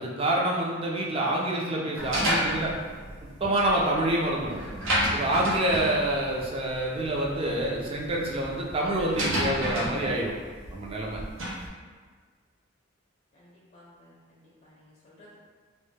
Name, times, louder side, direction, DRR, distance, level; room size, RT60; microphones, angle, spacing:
voice 1, 0.0-2.7 3.4-4.6 5.1-10.3 10.7-11.2, right 1 dB, 30° right, -3 dB, 0.4 m, -27 dB
sound 1, 2.0-11.7, equal, 80° right, 0.6 m, -32 dB
voice 2, 13.3-15.4, left 1 dB, 35° left, -7 dB, 0.4 m, -56 dB
2.1 x 2.1 x 3.2 m, 1.5 s
head